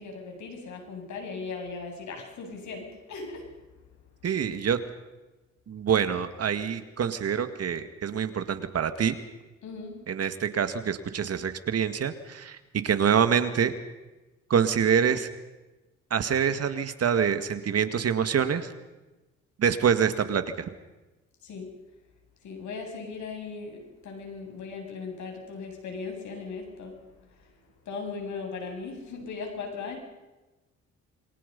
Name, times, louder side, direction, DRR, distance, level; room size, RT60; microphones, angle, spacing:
voice 1, 0.0-3.6 4.3-4.4 9.6-10.1 21.4-21.8 22.4-27.6 27.8-30.0, left 4 dB, 70° left, 3 dB, 7.7 m, -38 dB
voice 2, 4.2-4.8 5.7-9.2 10.1-12.6 12.8-13.7 14.5-15.3 16.1-18.7 19.6-20.7, right 7 dB, 55° right, 10 dB, 2.2 m, -26 dB
27.5 x 24.0 x 5.5 m, 1.1 s
cardioid pair, 90°, 30 cm